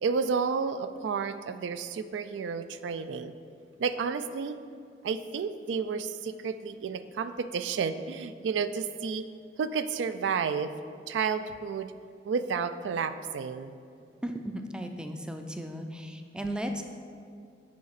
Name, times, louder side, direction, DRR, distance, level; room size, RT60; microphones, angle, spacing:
voice 1, 0.0-3.3 3.8-4.6 5.0-9.2 9.6-10.7 11.1-11.9 12.3-13.8, right 5 dB, 85° right, 11 dB, 0.3 m, -31 dB
voice 2, 14.2-16.8, right 1 dB, 5° right, 5 dB, 0.3 m, -35 dB
7.5 x 5.2 x 4.0 m, 2.4 s
head